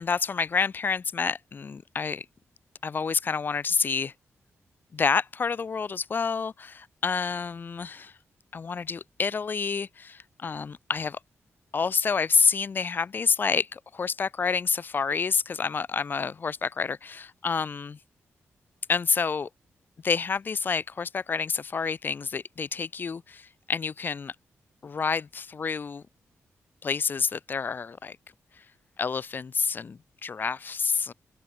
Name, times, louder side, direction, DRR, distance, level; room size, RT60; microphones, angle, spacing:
voice 1, 0.0-2.3 2.8-4.1 4.9-8.1 8.5-11.2 11.7-18.0 18.9-19.5 20.0-24.3 24.8-26.0 26.8-28.2 29.0-31.1, left 5 dB, 40° left, 0.8 m, -28 dB
open air
wide cardioid pair, 125°, 5 cm